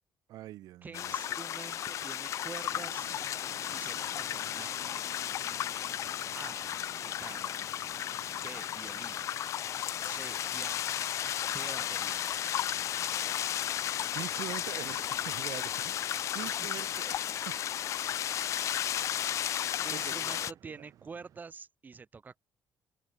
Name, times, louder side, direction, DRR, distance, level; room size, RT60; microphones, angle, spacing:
voice 1, 0.3-1.2 14.1-16.0 16.3-17.5 19.9-20.5 20.8-20.9, right 15 dB, 80° right, 2.8 m, -43 dB
voice 2, 0.8-3.1 3.7-5.0 6.3-6.6 7.0-7.6 8.4-9.2 10.0-10.9 11.4-12.3 16.4-16.8 19.8-22.4, right 5 dB, 25° right, 4.9 m, -47 dB
sound 1, 0.9-20.5, left 11 dB, 55° left, 0.4 m, -34 dB
sound 2, 2.7-21.4, right 12 dB, 65° right, 2.6 m, -57 dB
cardioid pair, 135°, 6 cm